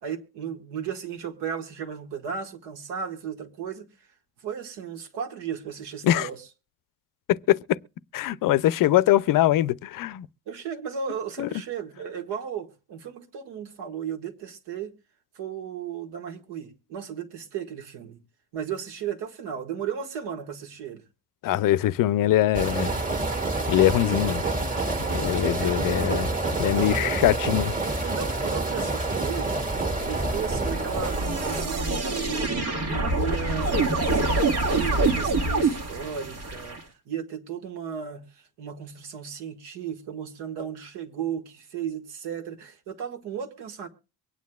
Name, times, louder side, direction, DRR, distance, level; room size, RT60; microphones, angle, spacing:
voice 1, 0.0-3.9 4.4-6.5 10.5-14.9 15.4-18.2 18.5-21.0 25.5-26.3 26.6-27.1 27.4-27.6 28.0-29.6 30.1-32.6 32.9-43.9, right 7 dB, 90° right, 1.8 m, -35 dB
voice 2, 7.3-7.8 8.1-10.3 11.4-11.5 21.4-22.9 23.7-24.4 25.1-26.3 26.6-27.7, left 13 dB, 55° left, 0.5 m, -22 dB
sound 1, 22.5-31.6, right 2 dB, 20° right, 1.6 m, -28 dB
sound 2, 29.7-36.8, right 2 dB, 70° right, 1.9 m, -26 dB
23.5 x 9.4 x 2.3 m
cardioid pair, 130°, 40 cm